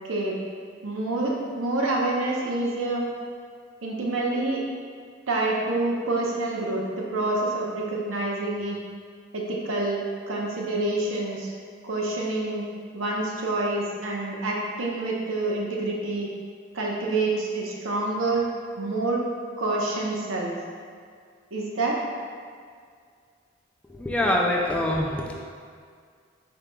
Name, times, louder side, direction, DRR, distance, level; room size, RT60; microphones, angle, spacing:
voice 1, 0.1-0.4 0.8-3.0 3.8-4.6 5.3-8.8 9.3-11.5 11.8-12.7 12.9-16.3 16.7-18.5 18.8-19.2 19.6-20.5 21.5-22.0, right 2 dB, 85° right, -3 dB, 0.8 m, -27 dB
voice 2, 23.9-25.3, left 1 dB, 5° left, -1 dB, 0.3 m, -24 dB
5.1 x 4.6 x 2.2 m, 2.1 s
head